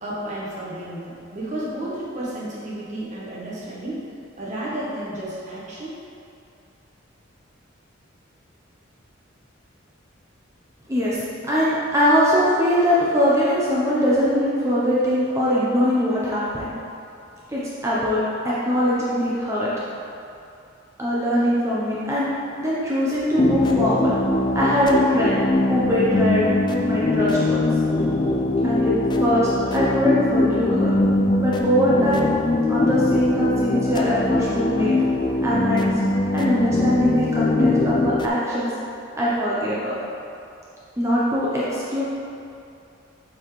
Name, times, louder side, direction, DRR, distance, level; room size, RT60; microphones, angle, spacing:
voice 1, 0.0-4.0 4.4-6.0 36.1-36.2, right 1 dB, 35° right, -6 dB, 1.3 m, -32 dB
voice 2, 10.9-16.7 17.5-19.7 21.0-22.3 22.6-24.1 24.5-25.4 25.7-26.6 26.8-27.7 28.6-28.9 29.2-30.9 31.4-32.3 32.7-34.9 35.4-35.9 36.3-38.7 39.2-39.9 41.0-42.0, equal, 15° right, -8 dB, 0.8 m, -22 dB
sound 1, 23.4-38.3, left 2 dB, 20° left, 0.3 m, -21 dB
7.5 x 4.6 x 3.3 m, 2.6 s
head